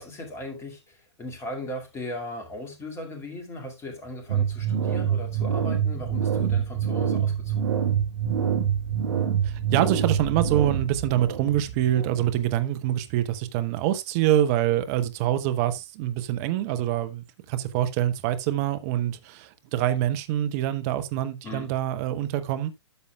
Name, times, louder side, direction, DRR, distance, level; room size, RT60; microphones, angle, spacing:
voice 1, 0.0-7.8 21.4-21.7, left 1 dB, 15° left, 2.2 m, -38 dB
sound 1, 4.3-12.5, right 8 dB, 60° right, 1.3 m, -26 dB
voice 2, 9.4-22.7, right 12 dB, 35° right, 0.8 m, -25 dB
12.5 x 6.9 x 2.2 m
figure-of-eight pair, 115°, 15 cm